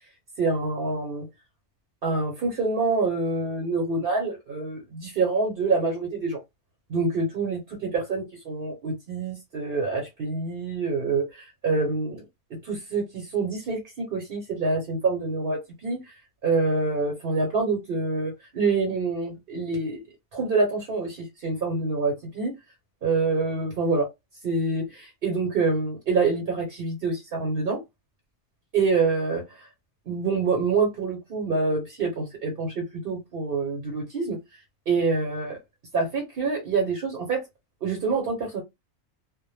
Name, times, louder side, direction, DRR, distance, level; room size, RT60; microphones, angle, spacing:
voice 1, 0.4-1.2 2.0-6.4 6.9-12.2 12.6-16.1 16.4-20.0 20.3-22.5 23.0-24.1 24.4-27.8 28.7-29.7 30.1-34.4 34.9-35.6 35.9-37.4 37.8-38.6, right 3 dB, 55° right, 0.9 m, -26 dB
2.1 x 2.1 x 3.0 m
omnidirectional pair, 1.2 m